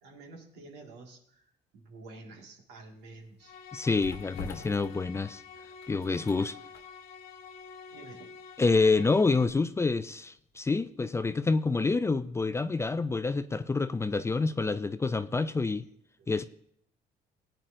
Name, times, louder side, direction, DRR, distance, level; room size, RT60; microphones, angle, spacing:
voice 1, 0.0-3.6 6.3-6.5 7.9-8.3 15.2-15.3 16.2-16.3, right 3 dB, 85° right, 1.9 m, -50 dB
sound 1, 2.8-10.7 11.0-11.2, left 4 dB, 85° left, 1.5 m, -48 dB
sound 2, 3.4-9.5, left 6 dB, 60° left, 1.0 m, -48 dB
voice 2, 3.7-5.4 5.9-6.5 8.6-15.9 16.3-16.5, left 3 dB, 15° left, 0.3 m, -27 dB
18.0 x 9.0 x 2.6 m
cardioid pair, 110°, 17 cm